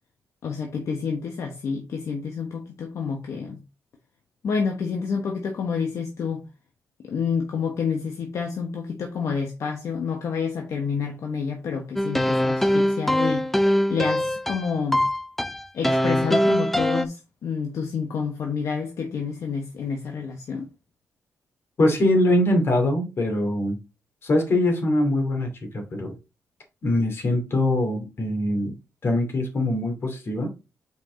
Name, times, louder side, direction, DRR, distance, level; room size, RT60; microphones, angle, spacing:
voice 1, 0.4-3.6 4.4-6.4 7.0-15.0 15.7-20.7, left 6 dB, 70° left, 1.1 m, -29 dB
sound 1, 12.0-17.1, equal, 5° left, 0.4 m, -22 dB
voice 2, 21.8-23.8 24.2-26.2 26.8-28.7 29.0-30.5, left 1 dB, 50° left, 2.5 m, -23 dB
5.8 x 4.7 x 3.8 m
cardioid pair, 110°, 5 cm